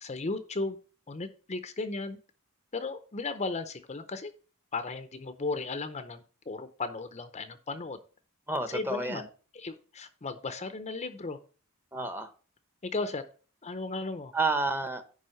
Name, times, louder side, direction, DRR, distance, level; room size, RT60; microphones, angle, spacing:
voice 1, 0.0-0.8 1.1-2.2 2.7-4.3 4.7-8.0 8.7-9.2 9.5-11.4 11.9-12.1 12.8-13.2 13.6-14.3, left 3 dB, 35° left, 10 dB, 0.7 m, -35 dB
voice 2, 8.5-9.3 11.9-12.3 14.3-15.0, right 3 dB, 10° right, 9 dB, 0.9 m, -30 dB
10.5 x 3.6 x 6.5 m, 0.37 s
head